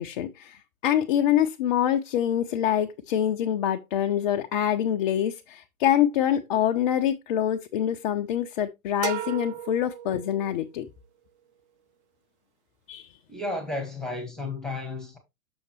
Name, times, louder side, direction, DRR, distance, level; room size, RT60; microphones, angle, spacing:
voice 1, 0.0-10.9 12.9-13.1, left 10 dB, 35° left, 0.6 m, -25 dB
sound 1, 9.0-10.8, right 12 dB, 50° right, 0.9 m, -35 dB
voice 2, 13.3-15.2, left 2 dB, ahead, 1.7 m, -33 dB
7.0 x 6.6 x 3.1 m
figure-of-eight pair, 115°, 45 cm